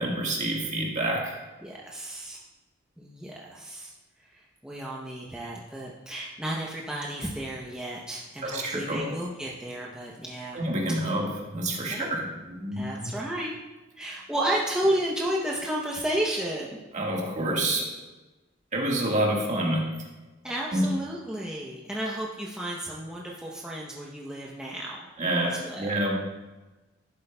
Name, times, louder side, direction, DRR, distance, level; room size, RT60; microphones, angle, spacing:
voice 1, 0.0-1.4 8.4-9.0 10.5-13.1 16.9-17.9 18.7-19.8 20.7-20.9 25.2-26.1, right 1 dB, 40° right, -2 dB, 1.6 m, -28 dB
voice 2, 1.6-2.4 3.0-3.9 4.3-10.6 11.9-12.2 12.7-13.6 14.0-16.8 20.4-25.1 25.3-25.9, right 1 dB, 5° right, -4 dB, 0.7 m, -32 dB
11.0 x 7.8 x 2.2 m, 1.1 s
head